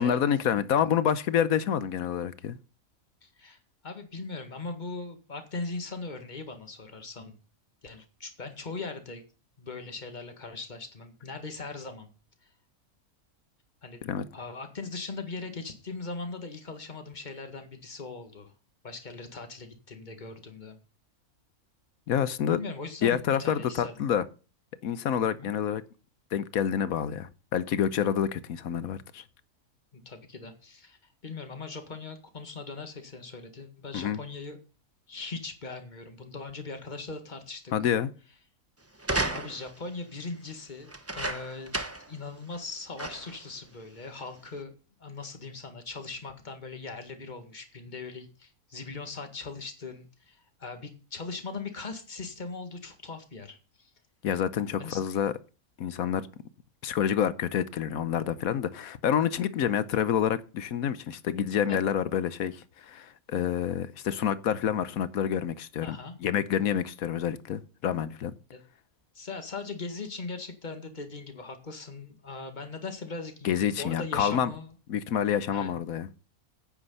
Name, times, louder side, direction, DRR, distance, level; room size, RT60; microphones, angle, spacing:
voice 1, 0.0-2.6 14.0-14.2 22.1-22.6 23.0-24.2 24.8-25.8 26.3-29.2 33.9-34.2 37.7-38.1 54.2-55.3 55.8-56.3 56.8-68.3 73.4-74.5 74.9-76.1, left 9 dB, 75° left, 1.2 m, -28 dB
voice 2, 3.2-7.3 7.8-9.2 9.6-12.1 13.8-14.0 14.3-18.5 18.8-20.8 22.5-24.1 25.2-25.5 29.9-31.0 31.2-34.6 35.1-37.7 39.3-41.8 42.1-44.7 45.0-53.9 54.8-55.0 61.7-61.8 65.8-66.1 68.5-68.6 69.1-74.7 75.5-75.7, left 3 dB, 30° left, 1.9 m, -40 dB
sound 1, 39.0-39.8 40.9-42.1 42.5-42.6 43.0-43.4 44.2-44.3, right 2 dB, 10° right, 0.8 m, -33 dB
9.8 x 9.0 x 5.5 m
omnidirectional pair, 1.5 m